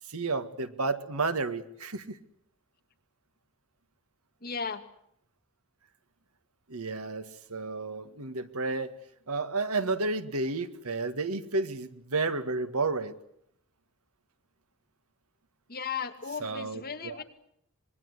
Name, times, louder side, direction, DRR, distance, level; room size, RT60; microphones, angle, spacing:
voice 1, 0.1-2.2 6.7-9.0 9.3-13.1 16.3-17.2, right 3 dB, 90° right, 10 dB, 1.8 m, -31 dB
voice 2, 4.4-4.8 15.7-17.2, left 6 dB, 45° left, 5 dB, 2.5 m, -36 dB
26.0 x 22.0 x 8.1 m, 0.71 s
head